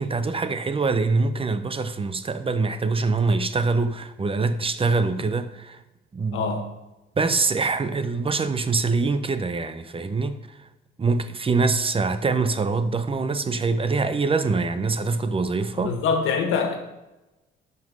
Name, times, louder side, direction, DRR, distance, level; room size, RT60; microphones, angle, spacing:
voice 1, 0.0-5.8 6.1-6.5 7.2-10.4 11.0-16.0, right 4 dB, 30° right, 0.7 m, -24 dB
voice 2, 6.3-6.6 15.8-16.8, left 5 dB, 85° left, 1.6 m, -24 dB
12.0 x 5.5 x 5.3 m
cardioid pair, 90°, 20 cm